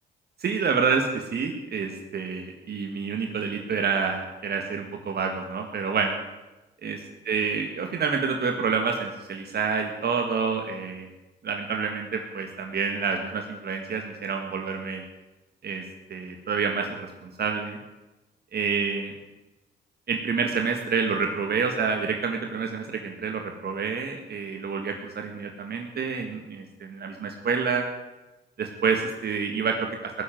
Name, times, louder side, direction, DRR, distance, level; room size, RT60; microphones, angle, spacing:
voice 1, 0.4-6.1 6.8-7.0 7.3-11.1 11.4-15.0 15.6-15.8 16.1-17.8 18.5-19.1 20.1-27.9 28.6-30.2, right 5 dB, 55° right, 3 dB, 1.9 m, -28 dB
18.0 x 7.6 x 9.2 m, 1.1 s
cardioid pair, 90°, 20 cm